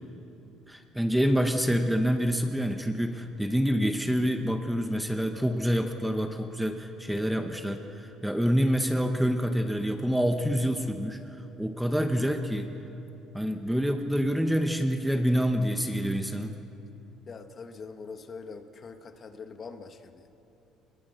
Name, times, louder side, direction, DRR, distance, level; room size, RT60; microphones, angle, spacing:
voice 1, 0.7-11.2 11.6-12.7 13.3-16.5, equal, ahead, 5 dB, 0.9 m, -27 dB
voice 2, 17.3-20.4, left 5 dB, 30° left, 7 dB, 1.2 m, -43 dB
26.0 x 21.0 x 8.0 m, 2.9 s
cardioid pair, 165°, 0 cm